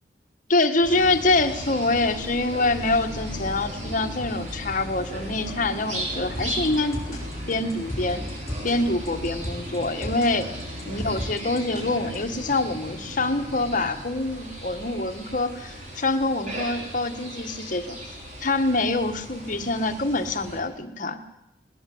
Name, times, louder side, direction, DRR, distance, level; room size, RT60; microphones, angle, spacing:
voice 1, 0.5-7.2 7.5-8.2 8.6-10.5 10.8-18.0 18.4-21.2, left 2 dB, 50° left, 7 dB, 1.6 m, -25 dB
sound 1, 0.8-20.6, equal, 45° right, 5.2 m, -36 dB
sound 2, 6.3-12.4, equal, 20° left, 6.4 m, -36 dB
20.0 x 19.5 x 7.9 m, 0.85 s
head